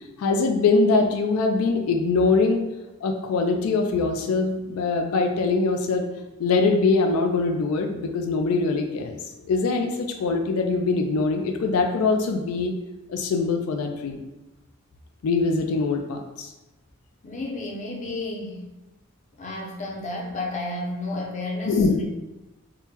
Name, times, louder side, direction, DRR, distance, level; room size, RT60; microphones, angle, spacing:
voice 1, 0.2-2.7 3.0-6.1 6.4-9.2 9.5-12.7 13.1-14.2 15.2-16.5 21.7-22.0, left 3 dB, 90° left, 4 dB, 0.3 m, -23 dB
voice 2, 17.2-18.7 19.4-22.1, left 2 dB, 35° left, -1 dB, 0.5 m, -32 dB
3.6 x 2.1 x 2.8 m, 1.0 s
head